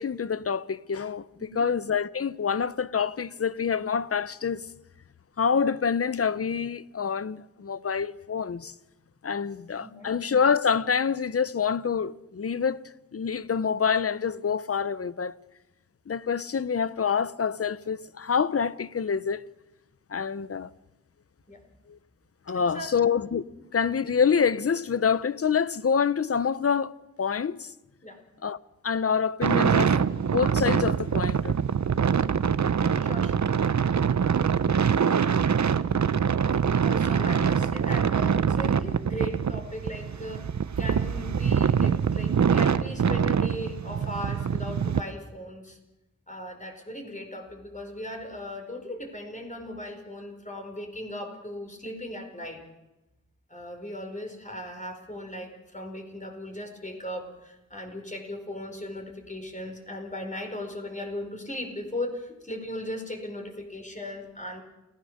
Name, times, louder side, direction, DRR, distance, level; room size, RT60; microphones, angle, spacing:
voice 1, 0.0-4.7 5.4-8.7 9.2-12.8 13.1-15.4 16.1-19.4 20.1-20.7 21.9-22.0 22.5-23.4 23.7-26.9 27.2-27.7 28.4-28.6 28.8-29.9 30.3-31.6, left 6 dB, 50° left, 0.7 m, -26 dB
voice 2, 9.8-10.1 21.5-21.6 22.5-22.9 28.0-28.2 32.1-32.3 33.0-33.5 36.8-40.4 40.8-45.8 46.3-52.6 53.5-64.6, left 1 dB, 25° left, 4.6 m, -38 dB
sound 1, 29.4-45.0, right 7 dB, 65° right, 0.8 m, -24 dB
29.0 x 17.0 x 6.6 m
wide cardioid pair, 90°, 30 cm